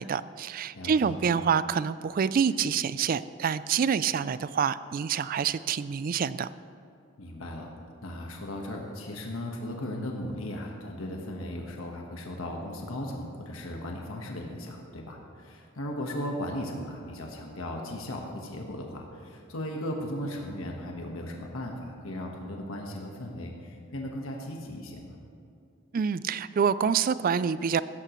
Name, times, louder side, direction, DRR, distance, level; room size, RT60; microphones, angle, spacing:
voice 1, 0.0-6.5 25.9-27.8, right 7 dB, 45° right, 16 dB, 0.3 m, -27 dB
voice 2, 0.7-1.1 7.2-7.7 8.0-25.1, left 1 dB, 75° left, 1 dB, 1.4 m, -37 dB
16.0 x 13.5 x 3.1 m, 2.4 s
head